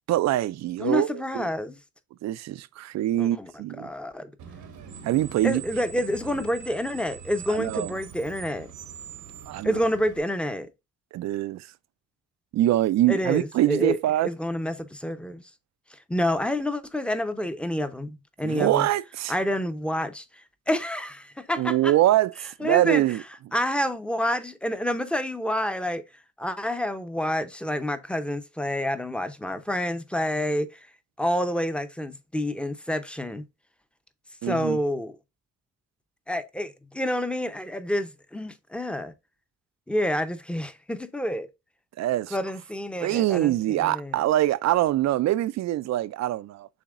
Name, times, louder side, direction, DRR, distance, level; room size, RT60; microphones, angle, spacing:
voice 1, 0.1-1.5 2.2-3.9 5.0-5.6 7.5-7.9 9.5-9.8 11.1-11.7 12.5-14.3 18.4-19.3 21.6-23.2 34.4-34.8 42.0-42.4 43.0-46.7, right 14 dB, 60° right, 0.4 m, -24 dB
voice 2, 0.8-1.8 3.2-3.5 3.8-4.3 5.4-8.7 9.6-10.7 13.1-14.0 14.2-15.4 15.9-18.9 19.3-21.9 22.6-23.0 23.5-26.0 26.4-30.9 31.2-33.4 34.4-35.1 36.3-39.1 39.9-41.5 42.3-44.2, left 1 dB, 5° left, 0.6 m, -28 dB
Screech, 4.4-10.2, right 7 dB, 85° right, 1.1 m, -43 dB
7.1 x 2.8 x 2.4 m
cardioid pair, 90°, 30 cm